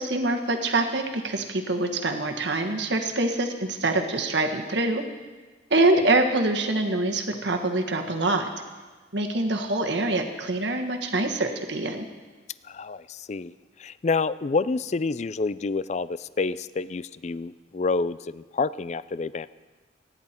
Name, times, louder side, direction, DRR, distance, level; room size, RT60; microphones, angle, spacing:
voice 1, 0.0-5.0 5.7-8.5 9.1-12.0, right 2 dB, 65° right, 4 dB, 1.5 m, -25 dB
voice 2, 5.7-6.1 12.6-13.5 13.8-19.5, left 4 dB, 35° left, 17 dB, 0.4 m, -28 dB
30.0 x 10.5 x 4.4 m, 1.3 s
head